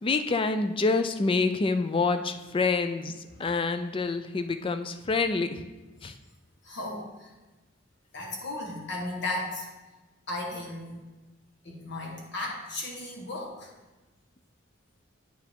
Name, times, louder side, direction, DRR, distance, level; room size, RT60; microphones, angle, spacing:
voice 1, 0.0-5.6 6.0-6.1, left 3 dB, 25° left, 9 dB, 0.4 m, -27 dB
voice 2, 6.6-7.3 8.1-9.6 10.3-11.0 11.6-13.7, left 2 dB, 60° left, -2 dB, 1.5 m, -35 dB
8.9 x 4.6 x 3.6 m, 1.2 s
head